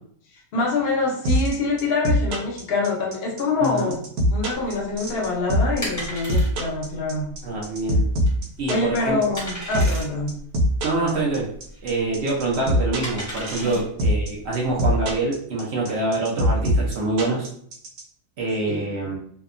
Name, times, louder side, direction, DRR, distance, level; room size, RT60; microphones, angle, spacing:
voice 1, 0.5-3.9 4.3-7.3 8.7-10.4 13.6-13.7 18.7-18.8, left 3 dB, 55° left, -1 dB, 0.7 m, -25 dB
sound 1, 1.2-18.0, equal, 80° right, 1.1 m, -22 dB
voice 2, 3.6-4.0 7.4-8.1 8.6-9.2 10.8-11.5 11.8-17.5 18.4-19.2, right 2 dB, 60° right, -3 dB, 0.7 m, -25 dB
sound 2, 4.5-15.2, equal, 20° left, 0.5 m, -37 dB
2.7 x 2.2 x 2.4 m, 0.64 s
omnidirectional pair, 1.6 m